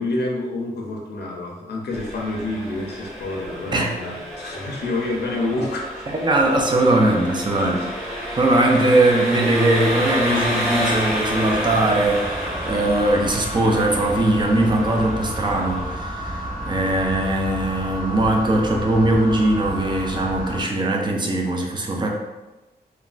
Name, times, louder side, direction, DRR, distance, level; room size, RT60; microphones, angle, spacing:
voice 1, 0.0-6.1 7.6-7.9, left 2 dB, 90° left, -1 dB, 0.5 m, -28 dB
Engine, 1.9-15.9, equal, ahead, 0.9 m, -29 dB
voice 2, 6.2-7.8 8.3-12.3 12.7-22.1, right 1 dB, 30° right, 0 dB, 0.4 m, -20 dB
Wind instrument woodwind instrument, 9.5-14.0, equal, 25° left, 0.6 m, -36 dB
sound 1, 9.7-20.6, equal, 45° right, 1.2 m, -32 dB
3.1 x 2.2 x 2.4 m, 1.1 s
wide cardioid pair, 150°, 17 cm